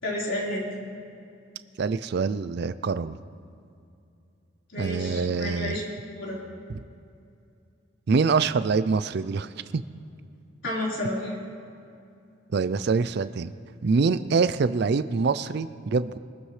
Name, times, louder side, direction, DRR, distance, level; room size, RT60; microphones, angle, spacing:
voice 1, 0.0-0.7 4.7-5.8 6.1-6.4 10.6-11.4, left 1 dB, 65° left, -5 dB, 4.3 m, -30 dB
voice 2, 1.8-3.2 4.8-5.8 6.7-6.8 8.1-9.8 12.5-13.5 13.8-16.2, right 4 dB, 55° right, 13 dB, 0.4 m, -25 dB
23.5 x 13.5 x 3.2 m, 2.5 s
head